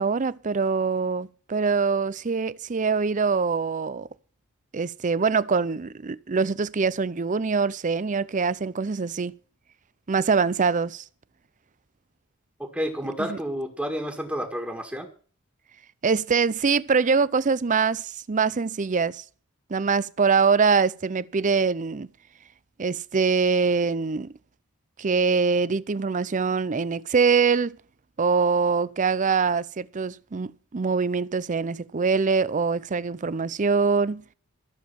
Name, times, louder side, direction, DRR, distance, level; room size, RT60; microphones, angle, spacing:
voice 1, 0.0-4.1 4.7-9.3 10.1-11.0 13.3-13.4 16.0-19.2 19.7-22.1 22.8-24.3 25.0-27.8 28.2-34.2, right 5 dB, 35° right, 0.5 m, -24 dB
voice 2, 12.6-15.1, equal, 5° right, 1.8 m, -30 dB
14.5 x 7.2 x 7.0 m
head